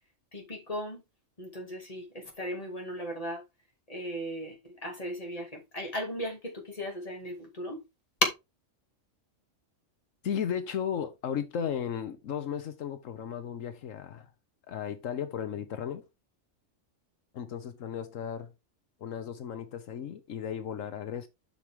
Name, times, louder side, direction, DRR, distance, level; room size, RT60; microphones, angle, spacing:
voice 1, 0.3-1.0 1.4-3.4 3.9-7.8, equal, 30° left, 2.6 m, -37 dB
voice 2, 10.2-14.3 14.7-16.1 17.3-18.5 19.0-21.3, left 8 dB, 85° left, 1.3 m, -35 dB
7.7 x 6.2 x 3.6 m
omnidirectional pair, 1.3 m